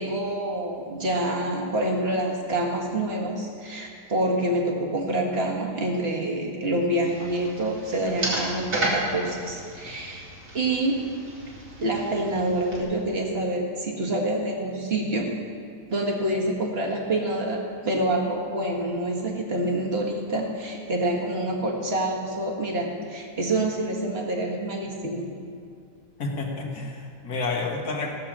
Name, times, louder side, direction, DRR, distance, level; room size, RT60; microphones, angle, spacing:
voice 1, 0.0-10.3 10.5-11.2 11.8-15.3 15.9-25.3, right 1 dB, 40° right, -1 dB, 1.9 m, -27 dB
sound 1, 7.1-12.8, right 1 dB, 65° right, 3.0 m, -33 dB
voice 2, 26.2-28.1, left 3 dB, 65° left, 1 dB, 2.0 m, -30 dB
16.5 x 6.8 x 7.4 m, 2.3 s
omnidirectional pair, 1.8 m